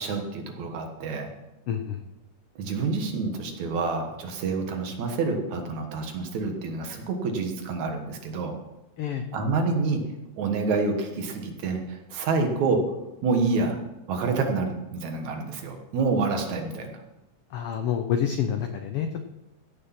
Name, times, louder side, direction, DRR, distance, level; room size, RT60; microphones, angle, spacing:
voice 1, 0.0-1.3 2.6-8.5 9.3-10.0 10.4-12.8 13.2-13.8 14.1-17.0, right 4 dB, 70° right, 4 dB, 2.7 m, -28 dB
voice 2, 1.7-2.0 9.0-9.2 17.5-19.2, left 8 dB, 85° left, 7 dB, 1.2 m, -28 dB
15.5 x 6.7 x 5.8 m, 0.96 s
omnidirectional pair, 3.5 m